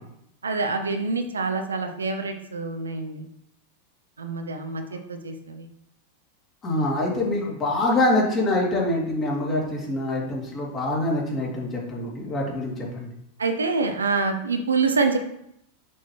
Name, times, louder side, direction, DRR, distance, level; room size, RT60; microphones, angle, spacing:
voice 1, 0.4-3.2 4.2-5.7 13.4-15.2, right 4 dB, 75° right, 6 dB, 0.6 m, -26 dB
voice 2, 6.6-13.1, left 1 dB, 25° left, -3 dB, 2.2 m, -25 dB
6.3 x 5.6 x 3.0 m, 0.78 s
figure-of-eight pair, 90°, 0 cm